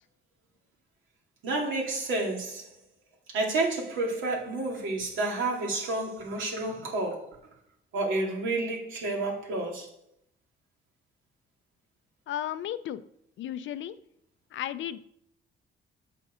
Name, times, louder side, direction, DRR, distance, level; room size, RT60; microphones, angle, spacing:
voice 1, 1.4-2.7 3.3-7.4 7.9-9.9, right 2 dB, 80° right, 2.4 m, -30 dB
voice 2, 12.3-13.0 13.4-14.0 14.5-15.0, left 11 dB, 75° left, 0.5 m, -34 dB
7.3 x 5.7 x 5.0 m
cardioid pair, 90°, 20 cm